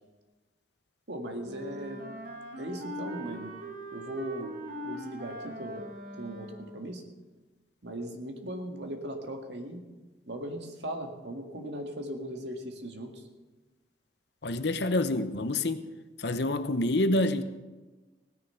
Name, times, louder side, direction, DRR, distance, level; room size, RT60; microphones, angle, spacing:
voice 1, 1.1-2.1 2.6-3.6 3.9-4.5 4.8-5.8 6.2-7.0 7.8-9.9 10.3-13.2, right 1 dB, 70° right, 2.0 m, -38 dB
Wind instrument woodwind instrument, 1.4-6.9, equal, 50° right, 2.1 m, -41 dB
voice 2, 14.4-15.8 16.2-17.4, left 2 dB, 65° left, 0.9 m, -27 dB
17.0 x 10.0 x 5.8 m
head